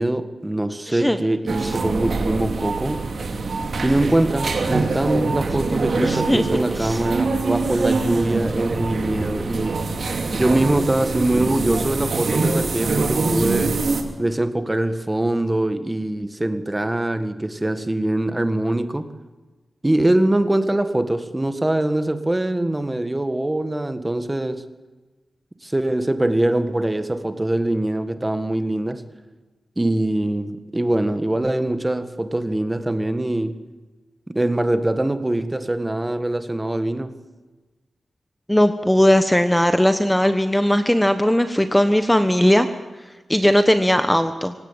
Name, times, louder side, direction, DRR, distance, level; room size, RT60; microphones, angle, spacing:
voice 1, 0.0-3.0 3.8-9.8 10.3-13.8 14.2-19.1 19.8-24.6 25.6-29.0 29.8-33.6 34.3-37.2, right 1 dB, 15° right, 10 dB, 1.8 m, -23 dB
voice 2, 0.9-1.2 1.6-1.7 6.0-6.5 6.8-7.0 38.5-42.7 43.3-44.5, left 1 dB, 10° left, 9 dB, 1.2 m, -18 dB
sound 1, 1.5-14.0, right 3 dB, 65° right, 3.1 m, -24 dB
26.0 x 17.0 x 8.9 m, 1.2 s
wide cardioid pair, 75°, 0 cm